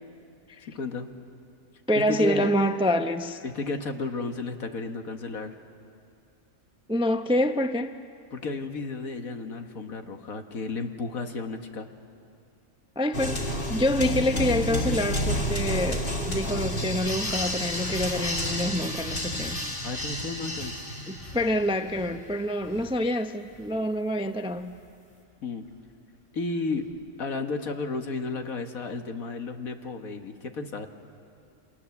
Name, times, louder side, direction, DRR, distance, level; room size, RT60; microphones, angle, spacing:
voice 1, 0.7-1.1 2.1-2.5 3.4-5.5 8.3-11.9 19.8-20.8 25.4-25.7 26.3-26.9 27.2-30.9, left 4 dB, 80° left, 5 dB, 1.9 m, -33 dB
voice 2, 1.9-3.4 6.9-8.0 13.0-19.6 21.1-24.8, left 1 dB, 5° right, 8 dB, 0.4 m, -27 dB
sound 1, 13.1-21.6, equal, 40° left, 2.5 m, -30 dB
sound 2, 17.2-19.3 19.7-23.0 23.4-24.9 25.6-25.8 26.8-26.9, left 1 dB, 25° left, 5.9 m, -45 dB
29.0 x 26.0 x 7.2 m, 2.4 s
omnidirectional pair, 1.5 m